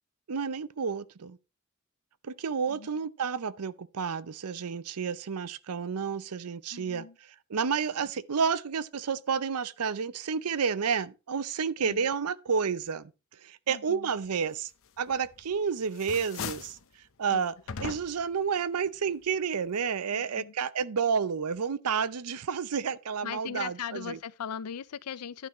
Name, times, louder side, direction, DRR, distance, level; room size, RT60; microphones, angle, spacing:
voice 1, 0.3-1.4 2.2-7.1 7.5-13.1 13.4-14.7 15.0-16.8 17.2-17.5 17.8-24.2, right 6 dB, 80° right, 0.6 m, -30 dB
voice 2, 2.7-3.0 6.7-7.2 11.8-12.1 13.7-14.1 17.3-17.5 20.1-20.5 23.2-25.5, left 7 dB, 85° left, 0.5 m, -39 dB
sound 1, 15.1-15.6 15.9-16.8 17.7-18.3, left 5 dB, 65° left, 0.9 m, -38 dB
11.0 x 9.7 x 3.1 m
head